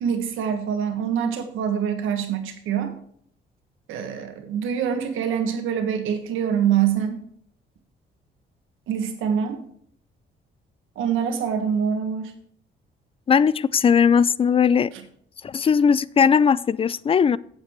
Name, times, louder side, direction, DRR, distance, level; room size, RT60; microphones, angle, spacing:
voice 1, 0.0-2.9 3.9-7.2 8.9-9.6 10.9-12.3 14.9-15.0, right 8 dB, 90° right, 6 dB, 1.6 m, -25 dB
voice 2, 13.3-14.9 15.4-17.4, left 6 dB, 30° left, 20 dB, 0.4 m, -18 dB
8.3 x 7.5 x 4.5 m, 0.63 s
cardioid pair, 90°, 20 cm